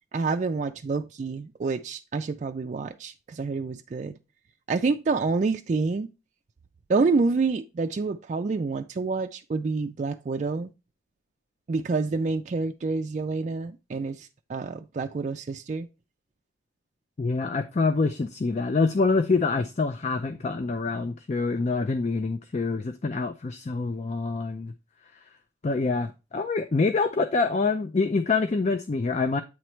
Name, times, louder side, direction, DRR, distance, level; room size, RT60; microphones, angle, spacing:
voice 1, 0.1-4.2 4.7-6.1 6.9-10.7 11.7-15.9, right 4 dB, 40° right, 0.3 m, -28 dB
voice 2, 17.2-24.7 25.6-29.4, left 4 dB, 35° left, 0.4 m, -26 dB
8.4 x 3.1 x 4.4 m
head